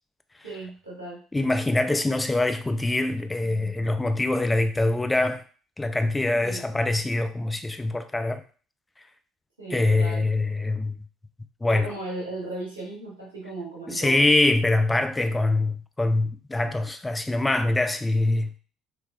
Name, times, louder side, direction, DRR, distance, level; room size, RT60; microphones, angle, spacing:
voice 1, 0.4-1.2 6.4-6.6 9.6-10.3 11.7-14.3, right 2 dB, 85° right, 1.2 m, -36 dB
voice 2, 1.3-5.4 5.8-8.4 9.7-10.9 11.6-11.9 13.9-18.6, left 2 dB, 15° left, 0.3 m, -24 dB
2.9 x 2.8 x 2.2 m
figure-of-eight pair, 55°, 0 cm